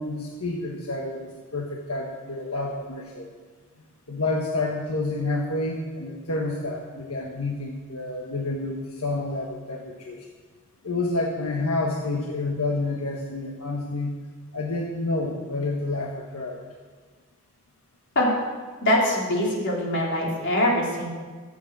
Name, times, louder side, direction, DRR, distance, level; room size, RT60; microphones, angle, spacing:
voice 1, 0.0-3.3 4.1-10.3 10.8-14.1 14.5-16.6, left 2 dB, 85° left, 0 dB, 1.5 m, -29 dB
voice 2, 18.8-21.1, left 1 dB, 55° left, -3 dB, 4.0 m, -23 dB
16.0 x 8.1 x 7.6 m, 1.4 s
head